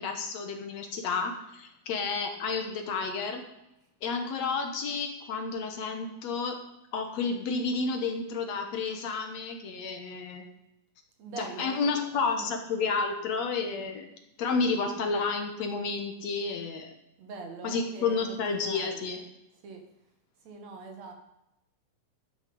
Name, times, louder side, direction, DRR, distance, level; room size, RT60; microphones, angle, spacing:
voice 1, 0.0-3.4 4.0-6.6 6.9-10.4 11.4-14.1 14.4-16.9 17.6-19.2, left 4 dB, 65° left, 5 dB, 2.2 m, -31 dB
voice 2, 11.2-12.5 17.2-19.2 19.6-19.8 20.4-21.1, right 3 dB, 60° right, 4 dB, 2.7 m, -43 dB
12.5 x 9.5 x 5.3 m, 0.85 s
omnidirectional pair, 3.6 m